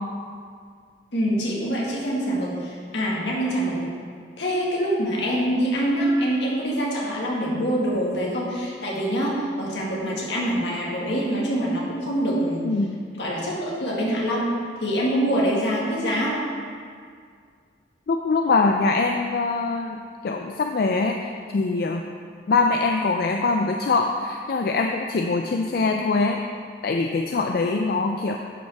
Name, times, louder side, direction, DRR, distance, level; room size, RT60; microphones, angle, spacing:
voice 1, 1.1-3.8 4.4-12.6 13.2-16.4, equal, 80° left, -4 dB, 1.8 m, -25 dB
voice 2, 12.7-13.0 18.1-21.2 21.5-22.0 22.5-26.4 26.8-28.4, left 3 dB, 55° left, 3 dB, 0.4 m, -23 dB
10.5 x 5.3 x 3.4 m, 2.1 s
head